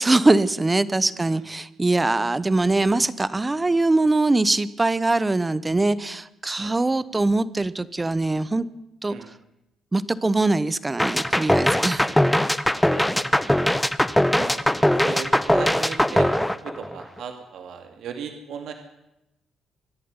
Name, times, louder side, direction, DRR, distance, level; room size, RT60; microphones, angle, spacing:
voice 1, 0.0-8.6 9.0-9.1 9.9-12.1, right 2 dB, 15° right, 17 dB, 1.0 m, -22 dB
sound 1, 11.0-17.2, left 1 dB, 5° left, 0.8 m, -21 dB
voice 2, 11.7-12.2 12.8-13.6 14.3-14.6 15.0-18.7, right 7 dB, 70° right, 5 dB, 2.4 m, -37 dB
24.5 x 11.0 x 9.8 m, 0.92 s
cardioid pair, 105°, 0 cm